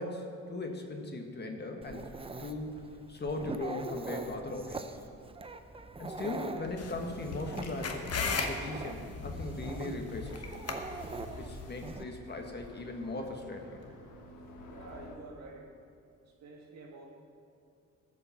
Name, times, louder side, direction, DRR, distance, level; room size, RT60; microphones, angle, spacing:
voice 1, 0.0-2.1 2.4-2.8 3.1-4.9 6.0-10.6 11.3-13.9, left 2 dB, 35° left, 3 dB, 1.5 m, -38 dB
Dog, 1.8-12.1, right 3 dB, 20° right, 0.6 m, -43 dB
sound 1, 6.6-15.2, left 3 dB, 80° left, 1.4 m, -46 dB
sound 2, 6.8-11.9, left 5 dB, 55° left, 1.2 m, -38 dB
voice 2, 14.7-15.7 16.3-17.1, right 3 dB, 60° right, 0 dB, 2.1 m, -49 dB
14.0 x 5.3 x 7.1 m, 2.4 s
cardioid pair, 90°, 30 cm